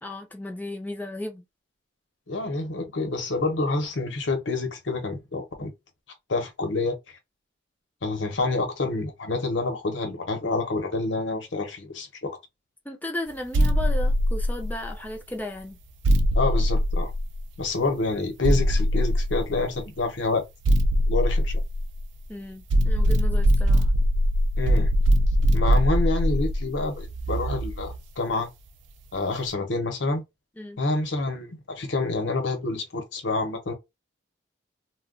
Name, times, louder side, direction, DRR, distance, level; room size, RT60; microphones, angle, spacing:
voice 1, 0.0-1.5 12.9-15.8 22.3-23.9 30.6-30.8, left 1 dB, 10° left, 0.4 m, -35 dB
voice 2, 2.3-5.7 6.3-7.2 8.0-12.4 16.3-17.1 17.6-20.4 21.1-21.6 24.6-24.9 25.5-28.5 29.1-30.2 30.8-33.7, left 3 dB, 80° left, 0.9 m, -28 dB
sound 1, 13.5-15.0 16.0-17.7 18.4-19.8 20.6-22.2 22.7-28.0, equal, 75° right, 0.4 m, -22 dB
2.3 x 2.2 x 3.6 m
head